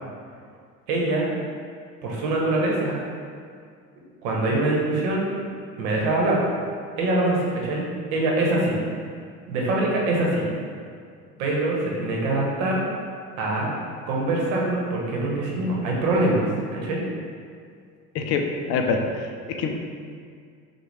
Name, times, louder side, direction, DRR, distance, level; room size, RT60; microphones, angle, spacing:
voice 1, 0.9-1.3 2.0-3.0 4.2-5.2 5.8-6.4 7.0-8.8 9.5-10.5 11.4-12.8 13.4-13.7 14.1-17.0, right 2 dB, 50° right, -2 dB, 1.2 m, -24 dB
voice 2, 18.1-19.8, left 4 dB, 35° left, 3 dB, 0.5 m, -25 dB
5.9 x 2.4 x 3.4 m, 2.2 s
figure-of-eight pair, 75°, 49 cm